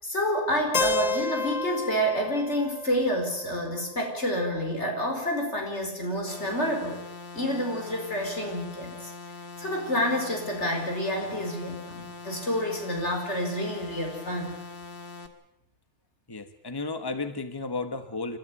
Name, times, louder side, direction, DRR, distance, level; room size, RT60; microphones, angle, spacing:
voice 1, 0.0-7.0 7.3-9.1 9.6-14.6, equal, 85° left, 3 dB, 5.0 m, -28 dB
Keyboard (musical), 0.7-4.6, left 3 dB, 35° left, 1.0 m, -32 dB
sound 1, 6.3-15.3, left 4 dB, 55° left, 2.0 m, -42 dB
voice 2, 16.3-18.4, left 3 dB, 20° left, 9 dB, 1.4 m, -33 dB
29.5 x 13.0 x 8.5 m, 0.78 s
omnidirectional pair, 1.2 m